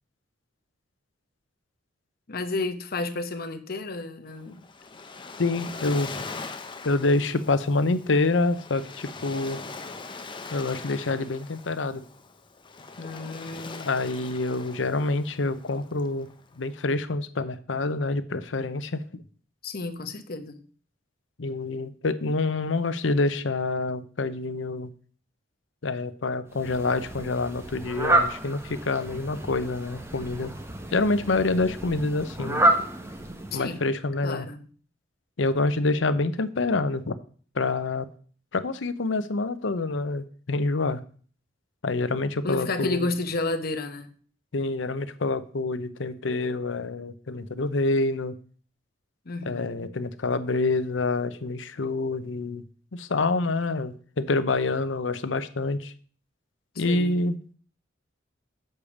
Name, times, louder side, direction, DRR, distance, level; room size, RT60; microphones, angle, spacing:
voice 1, 2.3-4.7 13.0-13.9 19.6-20.6 33.5-33.8 34.2-34.6 42.4-44.1 49.2-49.9 56.7-57.2, left 3 dB, 55° left, 9 dB, 1.0 m, -32 dB
Waves surf, 4.3-16.7, left 4 dB, 25° left, 0.7 m, -41 dB
voice 2, 5.4-6.1 6.8-9.6 10.5-12.0 13.9-16.3 16.6-19.0 21.4-24.9 25.8-30.5 30.9-32.6 33.5-34.4 35.4-37.1 37.5-38.1 38.5-41.0 41.8-43.1 44.5-48.3 49.4-52.6 52.9-55.9 56.8-57.5, left 3 dB, 80° left, 12 dB, 0.7 m, -27 dB
Fowl, 26.5-33.9, right 1 dB, 15° right, 1.0 m, -29 dB
6.8 x 5.1 x 7.1 m, 0.43 s
head